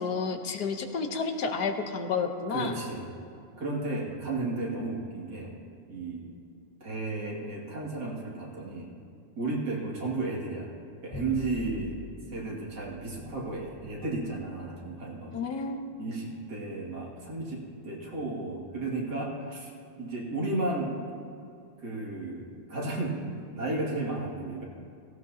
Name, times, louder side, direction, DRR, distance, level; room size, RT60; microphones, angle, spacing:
voice 1, 0.0-2.7 15.3-15.8, left 5 dB, 80° left, 5 dB, 1.5 m, -30 dB
voice 2, 2.5-3.1 3.6-5.5 5.9-6.3 6.8-8.9 9.4-10.7 11.0-12.0 12.3-15.3 16.0-19.7 20.0-21.2 21.8-24.6, right 2 dB, 80° right, -3 dB, 2.8 m, -33 dB
Bowed string instrument, 11.1-17.6, left 1 dB, 30° left, 1.4 m, -47 dB
17.5 x 16.5 x 2.8 m, 2.6 s
omnidirectional pair, 1.8 m